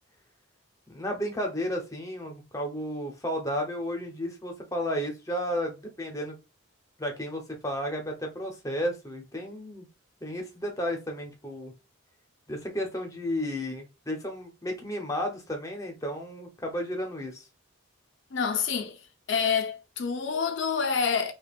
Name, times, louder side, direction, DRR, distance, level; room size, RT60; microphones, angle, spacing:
voice 1, 0.9-6.4 7.0-9.9 10.2-11.7 12.5-17.5, equal, 15° left, 0.7 m, -33 dB
voice 2, 18.3-19.0 19.3-21.3, left 6 dB, 60° left, 0.6 m, -27 dB
5.1 x 2.4 x 2.3 m
head